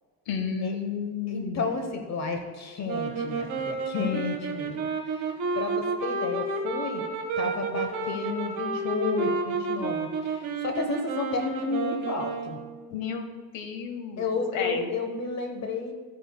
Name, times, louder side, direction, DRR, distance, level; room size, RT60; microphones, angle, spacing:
voice 1, 0.3-1.7 12.9-13.3 13.5-14.3 14.5-14.9, left 6 dB, 75° left, 5 dB, 1.6 m, -32 dB
voice 2, 1.3-4.8 5.1-5.3 5.5-7.0 7.4-12.6 14.2-15.9, left 4 dB, 35° left, 5 dB, 1.1 m, -31 dB
sound 1, 2.8-12.9, right 4 dB, 40° right, 1.5 m, -31 dB
14.0 x 9.3 x 2.3 m, 1.5 s
cardioid pair, 160°, 45 cm